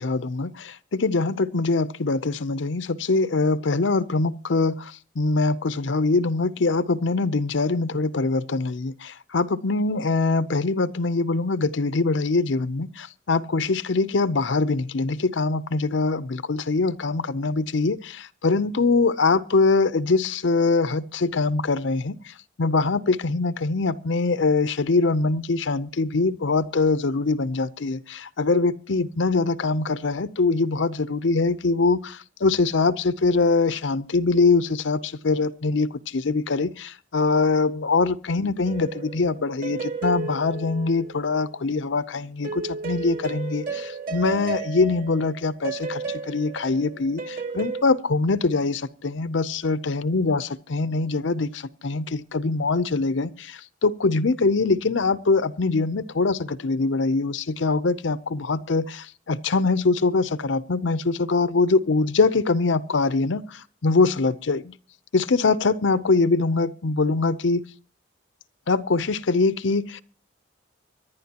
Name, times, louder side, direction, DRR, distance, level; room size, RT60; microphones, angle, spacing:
voice 1, 0.0-64.7 65.1-67.6 68.7-70.0, left 3 dB, 70° left, 0.6 m, -23 dB
sound 1, 38.6-41.6 42.4-47.8, right 4 dB, 45° right, 2.9 m, -33 dB
24.5 x 11.0 x 2.9 m
head